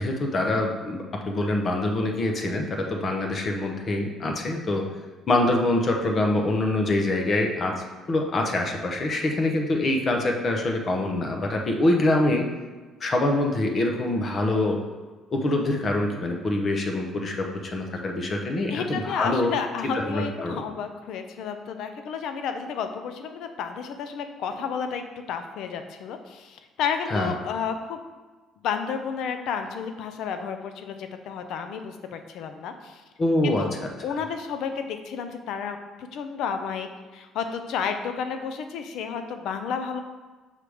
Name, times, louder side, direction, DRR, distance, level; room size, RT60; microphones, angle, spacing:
voice 1, 0.0-4.9 5.3-12.5 13.0-14.8 15.3-19.5 20.1-20.6 27.1-27.3 33.2-33.9, left 2 dB, 40° left, 2 dB, 0.8 m, -25 dB
voice 2, 18.7-28.0 28.6-33.0 33.4-33.7 34.0-40.0, left 6 dB, 75° left, 7 dB, 0.5 m, -31 dB
5.6 x 3.4 x 4.9 m, 1.3 s
cardioid pair, 105°, 0 cm